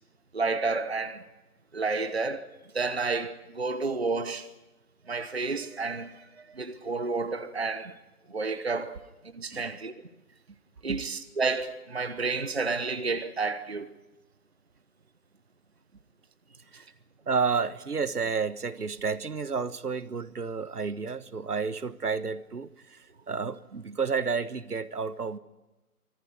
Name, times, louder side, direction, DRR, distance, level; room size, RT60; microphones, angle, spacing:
voice 1, 0.3-1.2 1.7-2.5 2.7-4.5 5.1-6.2 6.5-7.9 8.3-9.0 9.3-9.9 10.8-13.9, right 4 dB, 40° right, 1.0 m, -30 dB
voice 2, 9.5-9.8 10.9-11.0 16.7-16.9 17.3-25.4, right 5 dB, 75° right, 1.3 m, -31 dB
25.0 x 15.5 x 9.6 m
figure-of-eight pair, 180°, 47 cm